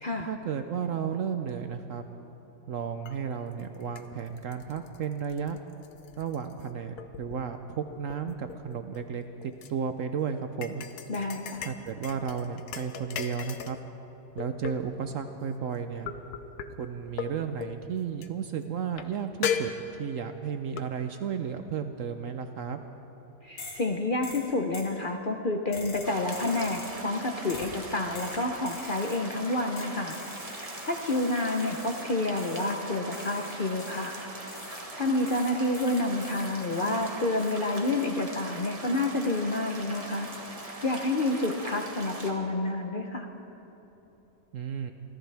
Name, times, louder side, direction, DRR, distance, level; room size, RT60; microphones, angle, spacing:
voice 1, 0.3-2.1 2.7-5.6 6.2-10.8 11.6-13.8 14.3-16.1 16.8-19.7 20.0-22.8 44.5-44.9, right 7 dB, 65° right, 7 dB, 0.8 m, -33 dB
sound 1, 3.1-3.2 3.6-6.6 7.0-7.5 7.9-9.7 10.6-13.8 14.4-15.0 16.0-16.7 17.2-17.3 17.6-17.8 18.2-18.3 19.0-19.1 19.4-20.2 20.8-20.9, left 8 dB, 65° left, 1.2 m, -36 dB
voice 2, 11.1-11.7 23.4-30.2 30.8-34.1 35.0-40.3 40.8-43.3, left 2 dB, 50° left, 3 dB, 0.6 m, -29 dB
sound 2, 23.6-23.9 24.2-25.0 25.7-27.0 27.5-27.8 28.1-29.3 29.8-32.1 32.4-32.8 33.1-34.9 35.3-37.1 37.4-37.7, left 3 dB, 85° left, 2.7 m, -45 dB
sound 3, 26.0-42.3, right 2 dB, 20° right, 1.4 m, -41 dB
27.5 x 14.5 x 3.4 m, 3.0 s
omnidirectional pair, 1.9 m